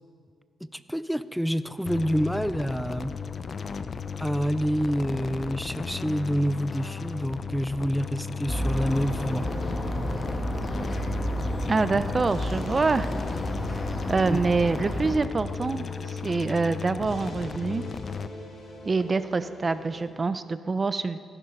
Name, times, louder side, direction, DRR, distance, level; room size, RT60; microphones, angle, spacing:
voice 1, 0.7-3.1 4.2-9.5 11.9-12.0 14.2-14.4, equal, ahead, 13 dB, 0.6 m, -27 dB
sound 1, 1.9-18.3, left 6 dB, 50° left, 0.6 m, -35 dB
sound 2, 8.5-15.1, equal, 30° left, 2.5 m, -31 dB
sound 3, 8.7-20.0, equal, 80° left, 3.9 m, -45 dB
voice 2, 11.7-13.1 14.1-17.8 18.8-21.2, right 4 dB, 35° right, 12 dB, 0.7 m, -26 dB
18.0 x 11.0 x 5.7 m, 2.2 s
cardioid pair, 65°, 0 cm